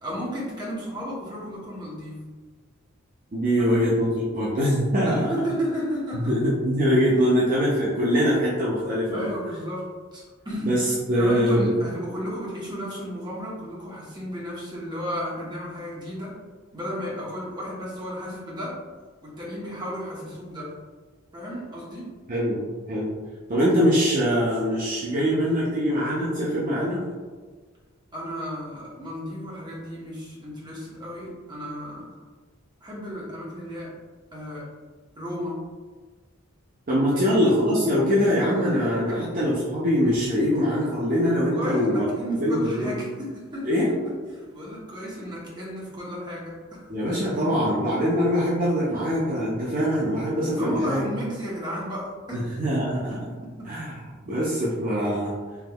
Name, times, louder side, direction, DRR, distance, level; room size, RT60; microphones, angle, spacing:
voice 1, 0.0-2.2 3.6-3.9 5.0-6.4 7.1-7.2 9.1-10.8 11.2-16.4 16.7-18.8 19.2-20.8 21.3-22.2 25.2-25.4 28.1-32.2 32.8-34.0 34.3-34.7 35.2-35.6 37.1-37.4 39.1-39.3 41.4-46.9 47.5-48.1 50.6-52.5 53.1-53.8, equal, 20° right, -6 dB, 0.9 m, -33 dB
voice 2, 3.3-5.3 6.1-9.3 10.6-11.7 22.3-23.1 23.5-27.0 36.9-42.1 42.3-42.9 43.6-43.9 46.9-51.0 52.3-53.2 53.6-53.9 54.3-55.4, equal, 40° right, -7 dB, 0.5 m, -23 dB
3.5 x 3.0 x 2.2 m, 1.4 s
head